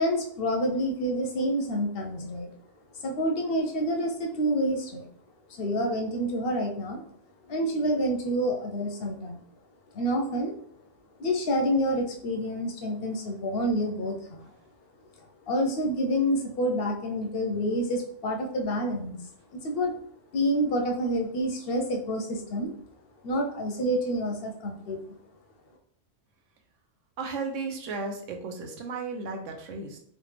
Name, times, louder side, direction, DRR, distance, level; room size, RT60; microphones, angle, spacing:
voice 1, 0.0-2.5 2.9-5.1 5.5-7.0 7.5-9.4 9.9-10.5 11.2-14.5 15.5-19.2 19.5-20.0 20.3-22.7 23.2-25.0, equal, 60° left, 2 dB, 0.7 m, -28 dB
voice 2, 27.2-30.0, right 4 dB, 85° right, 3 dB, 1.0 m, -34 dB
3.2 x 2.4 x 3.2 m, 0.62 s
omnidirectional pair, 1.2 m